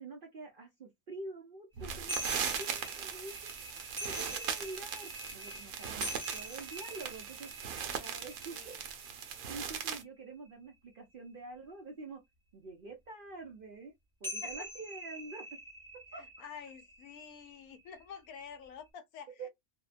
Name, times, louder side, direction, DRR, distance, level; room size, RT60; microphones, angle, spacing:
voice 1, 0.0-7.5 8.0-8.8 9.5-12.2 12.5-13.9 14.2-15.5 15.9-16.2 19.3-19.5, right 3 dB, 55° right, 0.6 m, -47 dB
sound 1, 1.8-10.0, right 7 dB, 75° right, 1.1 m, -39 dB
sound 2, 2.1-10.7 14.2-18.9, equal, ahead, 0.8 m, -45 dB
voice 2, 8.5-8.8 14.4-14.7 16.2-19.5, left 7 dB, 80° left, 1.0 m, -49 dB
2.7 x 2.1 x 2.4 m
omnidirectional pair, 1.5 m